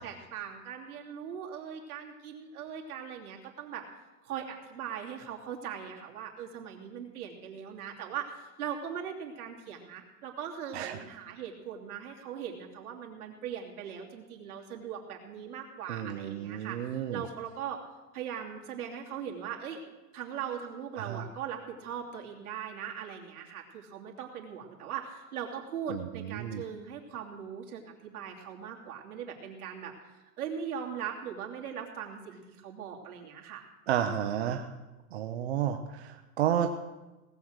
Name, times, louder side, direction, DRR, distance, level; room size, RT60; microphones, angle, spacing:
voice 1, 0.0-3.8 4.2-17.8 18.1-19.8 20.1-29.9 30.4-33.7, right 8 dB, 70° right, 0 dB, 2.9 m, -40 dB
voice 2, 15.9-17.2 21.0-21.2 25.9-26.0 26.3-26.6 33.9-34.7 35.1-36.7, right 10 dB, 45° right, 6 dB, 0.7 m, -31 dB
18.5 x 7.6 x 6.5 m, 1.1 s
supercardioid pair, 170°, 47 cm